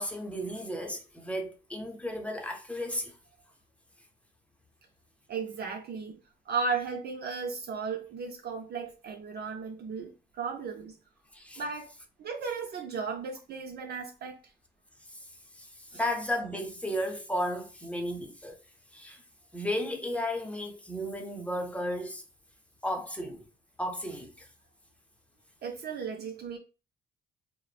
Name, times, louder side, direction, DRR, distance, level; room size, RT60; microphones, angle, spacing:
voice 1, 0.0-3.2 11.3-11.6 15.1-15.2 15.5-18.6 18.9-19.2 19.5-22.2 22.8-23.4 23.8-24.5, equal, 5° left, 0.6 m, -34 dB
voice 2, 5.3-6.2 6.5-11.0 11.6-11.9 12.2-14.5 15.9-16.0 25.6-26.6, right 5 dB, 55° right, 0.4 m, -35 dB
3.0 x 2.0 x 2.3 m
cardioid pair, 90°, 20 cm